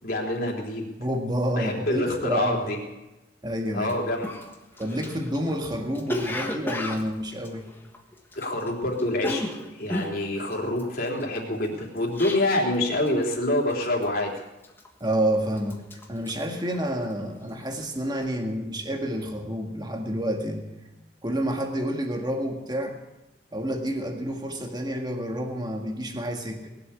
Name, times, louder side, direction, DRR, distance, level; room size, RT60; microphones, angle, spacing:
voice 1, 0.0-0.9 1.5-2.8 3.7-4.3 8.4-9.4 9.8-14.3, left 1 dB, 55° left, -1 dB, 3.5 m, -26 dB
voice 2, 1.0-2.6 3.4-3.9 4.8-7.6 15.0-15.8 16.1-20.6 21.2-23.0 23.5-26.7, equal, 25° right, 3 dB, 1.9 m, -29 dB
Cough, 3.8-3.9 4.2-8.7 8.9-12.8 13.1-13.4 13.7-14.2 14.6-15.2 15.5-17.2 17.5-17.8, left 1 dB, 10° left, 1.5 m, -34 dB
20.0 x 7.8 x 8.4 m, 1.0 s
head